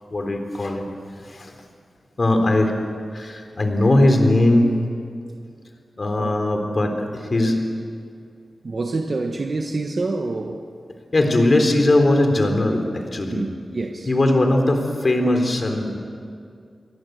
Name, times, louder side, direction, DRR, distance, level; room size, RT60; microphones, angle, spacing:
voice 1, 0.1-0.9 1.1-1.6 2.2-2.7 3.1-4.7 6.0-7.6 11.1-13.5 14.1-16.0, left 1 dB, 35° left, 4 dB, 3.6 m, -19 dB
voice 2, 8.6-10.7 13.3-14.1, right 3 dB, 40° right, 3 dB, 1.3 m, -27 dB
29.0 x 23.0 x 8.1 m, 2.3 s
wide cardioid pair, 165°, 0 cm